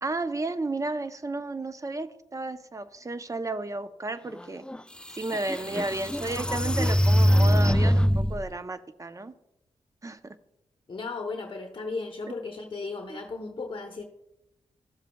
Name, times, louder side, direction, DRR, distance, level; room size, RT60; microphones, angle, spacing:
voice 1, 0.0-4.6 5.1-9.3 10.0-10.3 13.1-13.2, right 2 dB, 30° right, 11 dB, 0.7 m, -33 dB
sound 1, 4.7-4.8 5.3-8.4, equal, 10° left, 0.3 m, -22 dB
voice 2, 10.9-14.0, left 3 dB, 50° left, 2 dB, 0.9 m, -35 dB
14.0 x 7.3 x 2.3 m, 0.85 s
cardioid pair, 55°, 11 cm